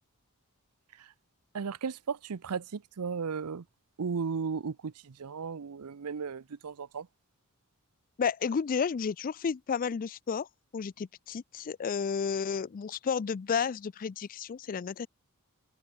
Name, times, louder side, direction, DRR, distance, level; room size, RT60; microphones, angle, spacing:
voice 1, 1.5-3.6 4.0-7.1, right 5 dB, 90° right, 0.6 m, -35 dB
voice 2, 8.2-10.5 10.7-15.1, left 6 dB, 40° left, 0.3 m, -32 dB
head